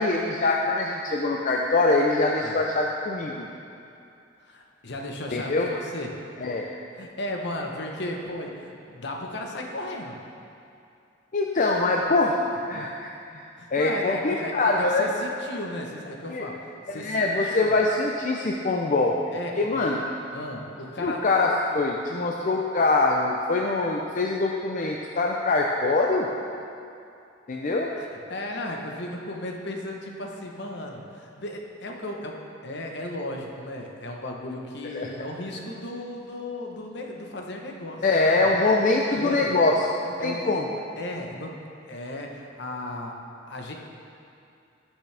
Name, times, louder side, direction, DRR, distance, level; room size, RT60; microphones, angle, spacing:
voice 1, 0.0-3.5 5.3-5.7 6.4-6.7 11.3-12.4 12.7-13.4 13.7-15.1 16.3-16.5 16.9-19.2 19.6-20.0 21.0-26.3 27.5-27.9 34.9-35.1 38.0-39.9 40.2-40.7, left 3 dB, 45° left, 0 dB, 0.5 m, -23 dB
voice 2, 4.4-6.2 7.0-10.2 13.6-16.6 16.9-17.8 19.3-19.8 20.3-21.3 28.1-38.5 39.2-39.5 40.2-40.4 41.0-41.6 41.9-43.2 43.5-43.7, left 1 dB, 65° left, 1 dB, 1.1 m, -35 dB
17.0 x 6.2 x 3.4 m, 2.6 s
head